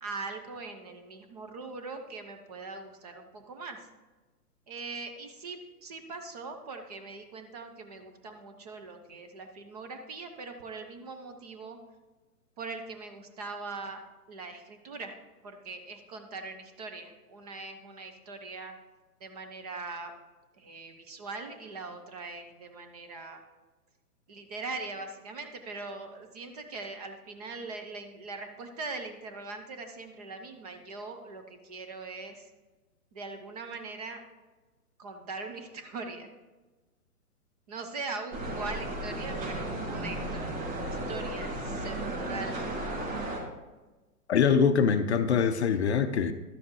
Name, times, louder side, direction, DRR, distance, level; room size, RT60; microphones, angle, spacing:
voice 1, 0.0-3.9 4.7-11.8 12.6-14.0 14.3-15.2 15.4-18.7 19.2-20.1 20.6-23.4 24.3-32.5 33.1-34.2 35.0-36.3 37.7-42.6, right 3 dB, 25° right, 5 dB, 0.6 m, -41 dB
sound 1, 38.3-43.4, right 1 dB, 60° right, 2.2 m, -34 dB
voice 2, 44.3-46.3, left 6 dB, 45° left, 9 dB, 0.5 m, -24 dB
12.0 x 7.1 x 3.1 m, 1.2 s
figure-of-eight pair, 125°, 47 cm